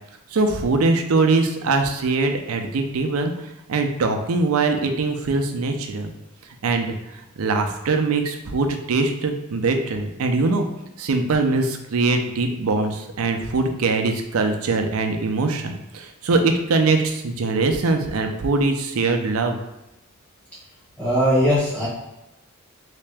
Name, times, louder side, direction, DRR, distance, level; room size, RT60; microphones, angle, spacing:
voice 1, 0.3-3.3 3.7-6.1 6.6-6.9 7.4-10.7 11.0-19.6, right 3 dB, 85° right, 5 dB, 0.5 m, -22 dB
voice 2, 21.0-21.9, equal, 5° left, -8 dB, 1.4 m, -19 dB
3.2 x 2.8 x 3.4 m, 0.94 s
head